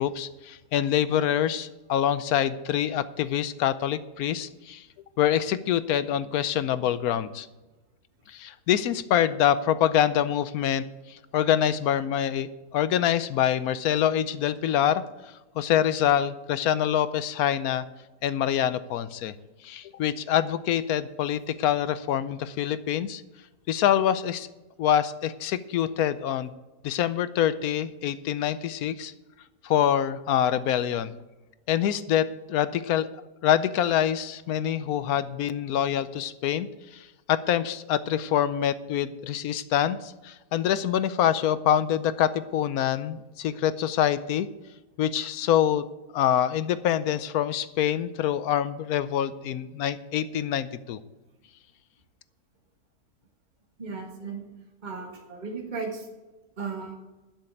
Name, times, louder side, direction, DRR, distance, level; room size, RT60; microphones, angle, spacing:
voice 1, 0.0-4.8 5.2-7.5 8.3-17.8 18.2-19.3 19.6-23.2 23.7-24.5 24.8-26.5 26.8-29.1 29.6-31.1 31.7-33.1 33.4-36.7 36.9-44.5 45.0-45.8 46.1-51.0, left 10 dB, 70° left, 14 dB, 1.0 m, -25 dB
voice 2, 53.8-54.4 54.8-56.1 56.6-57.0, right 4 dB, 30° right, 0 dB, 1.8 m, -35 dB
12.0 x 6.6 x 8.4 m, 1.1 s
omnidirectional pair, 1.7 m